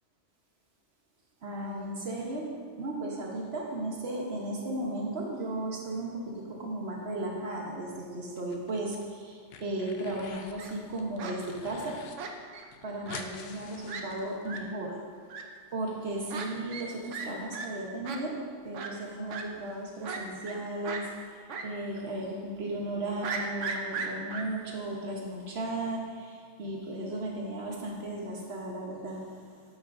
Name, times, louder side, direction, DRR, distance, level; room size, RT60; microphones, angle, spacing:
voice 1, 1.4-12.0 12.8-15.0 15.7-29.6, right 1 dB, 60° right, -1 dB, 1.3 m, -35 dB
sound 1, 8.4-9.0 9.3-10.6 11.0-12.2 12.4-12.5 12.7-14.6, left 6 dB, 65° left, 0.8 m, -47 dB
Fowl, 10.3-10.7 11.2-11.3 12.2-12.7 13.1-13.2 13.5-13.6 13.9-14.0 14.4-14.6 15.3-15.4 16.3-16.5 16.7-16.9 17.1-17.3 17.5-17.7 18.0-18.2 18.7-18.9 19.3-19.4 20.0-20.6 20.8-21.0 21.5-21.6 22.0-22.1 23.2-24.4, right 5 dB, 80° right, 1.1 m, -36 dB
8.9 x 7.5 x 2.6 m, 2.1 s
omnidirectional pair, 1.2 m